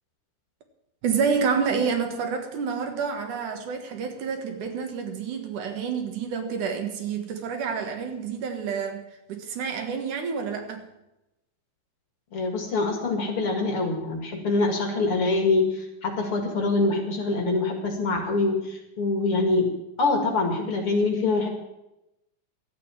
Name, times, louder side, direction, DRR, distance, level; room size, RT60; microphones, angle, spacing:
voice 1, 1.0-9.0 9.3-10.9, right 6 dB, 75° right, 3.0 m, -28 dB
voice 2, 12.3-19.7 20.0-21.5, left 3 dB, 45° left, 2.5 m, -24 dB
13.0 x 8.6 x 8.8 m
omnidirectional pair, 3.7 m